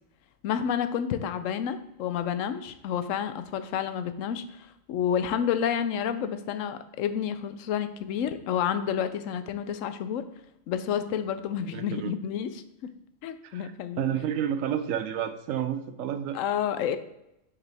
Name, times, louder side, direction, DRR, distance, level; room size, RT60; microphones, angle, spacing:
voice 1, 0.4-10.2 10.7-12.5 13.2-14.0 16.3-17.0, left 8 dB, 75° left, 11 dB, 0.9 m, -29 dB
voice 2, 11.7-12.1 13.4-13.7 14.0-16.4, right 9 dB, 80° right, 10 dB, 1.0 m, -30 dB
6.5 x 4.8 x 3.4 m, 0.85 s
omnidirectional pair, 1.4 m